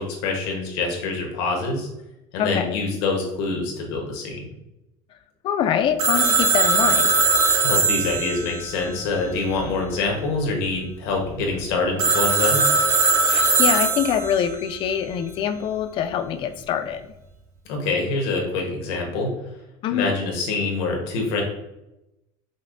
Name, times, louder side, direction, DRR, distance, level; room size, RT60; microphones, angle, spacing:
voice 1, 0.0-1.9 2.3-4.4 7.6-12.6 17.7-19.3 19.9-21.4, left 3 dB, 85° left, 1 dB, 1.0 m, -25 dB
voice 2, 2.4-2.8 5.4-7.2 13.3-17.1 19.8-20.2, left 9 dB, 45° left, 9 dB, 0.4 m, -24 dB
Telephone, 6.0-9.6 12.0-14.5, right 4 dB, 80° right, 0.8 m, -20 dB
5.3 x 2.1 x 2.5 m, 0.91 s
cardioid pair, 135°, 12 cm